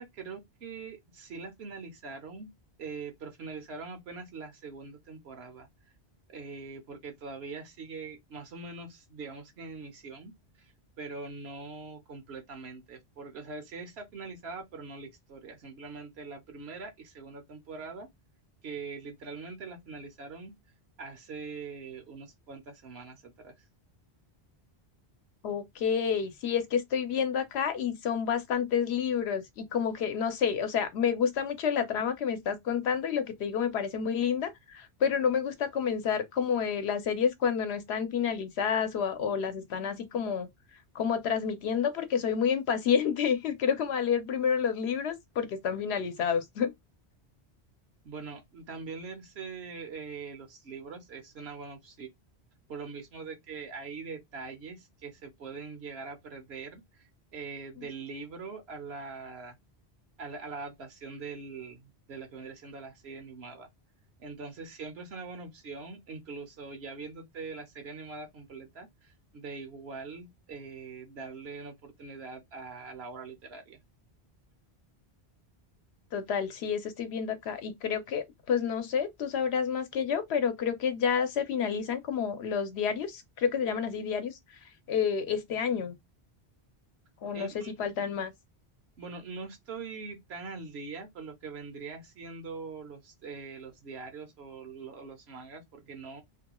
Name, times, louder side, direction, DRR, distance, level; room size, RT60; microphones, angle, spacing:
voice 1, 0.0-2.5 2.8-5.7 6.3-10.3 10.6-10.7 11.0-18.1 18.6-20.5 21.0-23.6 48.0-52.1 52.7-59.6 60.2-63.7 64.2-73.8 87.3-87.7 89.0-96.2, right 4 dB, 75° right, 1.0 m, -42 dB
voice 2, 25.4-40.5 40.9-46.7 57.8-57.9 76.1-84.4 84.9-86.0 87.2-87.5 87.8-88.3, left 7 dB, 85° left, 0.9 m, -29 dB
2.7 x 2.2 x 2.9 m
omnidirectional pair, 1.1 m